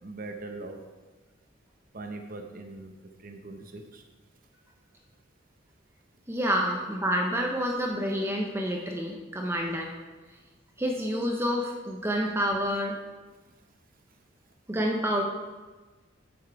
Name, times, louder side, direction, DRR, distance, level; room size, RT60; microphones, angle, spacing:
voice 1, 0.0-0.8 1.9-2.9 3.2-4.0, right 2 dB, 45° right, 4 dB, 0.8 m, -41 dB
voice 2, 6.3-9.9 10.8-13.0 14.7-15.2, equal, 15° right, 0 dB, 0.7 m, -28 dB
8.3 x 7.0 x 4.7 m, 1.3 s
head